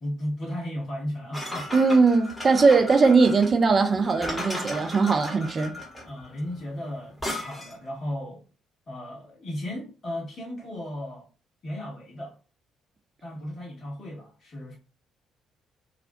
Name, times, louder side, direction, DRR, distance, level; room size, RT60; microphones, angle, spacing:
voice 1, 0.0-1.7 6.0-8.4 8.9-11.3 11.6-12.4 13.2-14.8, left 1 dB, 45° left, 0.7 m, -35 dB
sound 1, 1.3-7.9, left 1 dB, 10° left, 1.0 m, -36 dB
voice 2, 1.7-5.7, right 4 dB, 35° right, 0.4 m, -20 dB
2.4 x 2.1 x 2.5 m
figure-of-eight pair, 45°, 0 cm